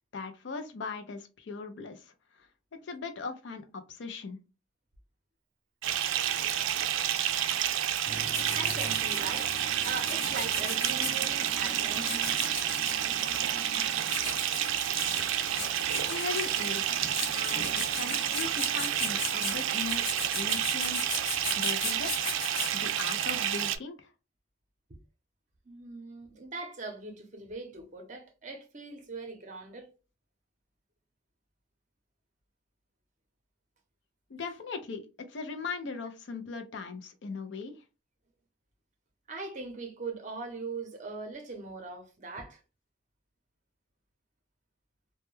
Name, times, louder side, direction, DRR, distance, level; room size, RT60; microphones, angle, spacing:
voice 1, 0.1-4.4 15.9-17.1 17.3-20.0 20.3-21.0 21.6-22.3 22.7-24.1 34.3-37.8, left 4 dB, 70° left, 0.5 m, -39 dB
Bathtub (filling or washing) / Fill (with liquid), 5.8-23.8, right 10 dB, 80° right, 0.3 m, -30 dB
voice 2, 7.7-9.5 9.8-12.3 25.7-29.9 39.3-42.6, right 3 dB, 40° right, 0.6 m, -40 dB
Writing, 8.1-23.0, left 3 dB, 90° left, 0.9 m, -39 dB
2.1 x 2.1 x 3.0 m
head